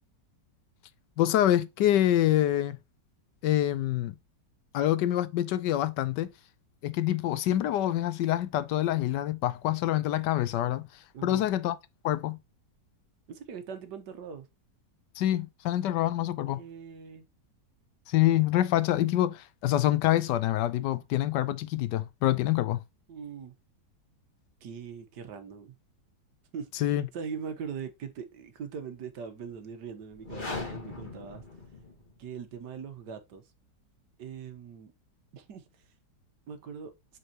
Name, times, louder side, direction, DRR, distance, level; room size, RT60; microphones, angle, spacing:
voice 1, 1.2-2.8 3.4-4.1 4.7-6.3 6.8-10.8 11.2-11.8 12.0-12.4 15.2-16.6 18.1-22.8 26.8-27.1, left 13 dB, 80° left, 1.2 m, -26 dB
voice 2, 11.1-11.5 13.3-14.5 16.5-17.2 23.1-23.5 24.6-25.8 26.5-31.4 32.2-33.4 34.2-34.9 35.3-35.9 36.5-36.9, right 6 dB, 70° right, 1.6 m, -41 dB
sound 1, 30.1-32.2, left 3 dB, 30° left, 1.8 m, -39 dB
7.8 x 4.5 x 2.8 m
omnidirectional pair, 1.9 m